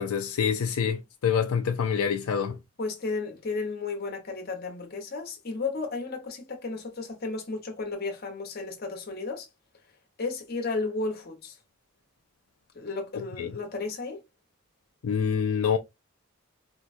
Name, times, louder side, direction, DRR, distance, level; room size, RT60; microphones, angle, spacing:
voice 1, 0.0-2.6 13.4-13.5 15.0-15.8, left 7 dB, 85° left, 0.5 m, -26 dB
voice 2, 2.8-9.5 10.2-11.6 12.7-14.2, left 3 dB, 45° left, 1.0 m, -33 dB
4.4 x 2.2 x 2.5 m
head